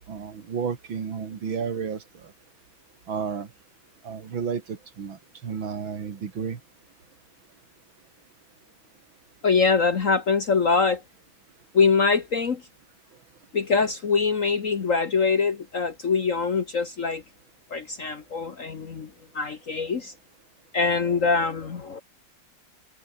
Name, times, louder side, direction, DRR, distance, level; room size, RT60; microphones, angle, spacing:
voice 1, 0.1-2.3 3.1-3.5 4.0-6.6, right 6 dB, 85° right, 3.1 m, -32 dB
voice 2, 9.4-11.0 11.7-12.6 13.5-17.2 17.7-20.1 20.7-22.0, left 5 dB, 45° left, 1.5 m, -23 dB
omnidirectional pair, 2.1 m